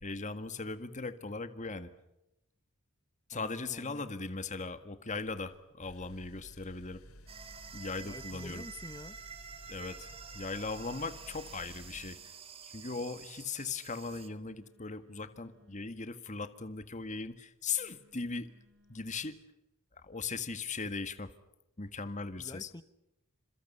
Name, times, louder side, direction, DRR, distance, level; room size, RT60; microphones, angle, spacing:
voice 1, 0.0-1.9 3.3-7.0 7.7-8.6 9.7-12.3 12.6-18.5 18.9-19.4 19.9-21.3 21.8-22.7, left 4 dB, 35° left, 11 dB, 1.8 m, -39 dB
voice 2, 3.3-4.1 8.0-9.2 22.4-22.8, left 1 dB, 20° left, 15 dB, 1.1 m, -47 dB
Telephone, 5.1-19.4, left 2 dB, 60° right, 6.3 m, -69 dB
sound 1, 5.8-12.1, equal, 90° left, 2.6 m, -54 dB
sound 2, 7.3-14.3, right 6 dB, 25° right, 2.2 m, -49 dB
29.0 x 27.0 x 5.6 m, 0.90 s
head